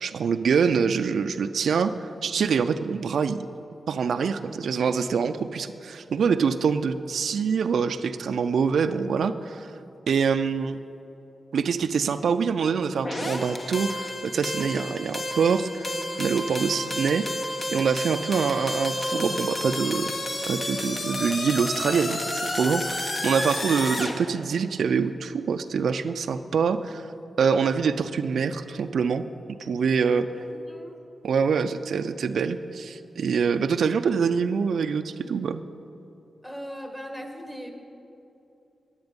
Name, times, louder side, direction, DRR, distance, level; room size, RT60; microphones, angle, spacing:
voice 1, 0.0-3.4 3.9-9.7 10.1-10.8 11.5-15.9 16.2-17.3 17.7-20.1 20.5-27.1 27.4-29.3 29.6-30.3 31.2-35.6, right 6 dB, 80° right, 10 dB, 0.3 m, -25 dB
sound 1, 13.0-24.1, left 1 dB, 45° left, 1.2 m, -31 dB
voice 2, 30.5-31.0 36.4-37.7, equal, 10° left, 4 dB, 1.6 m, -39 dB
10.0 x 9.6 x 5.2 m, 2.8 s
cardioid pair, 45°, 0 cm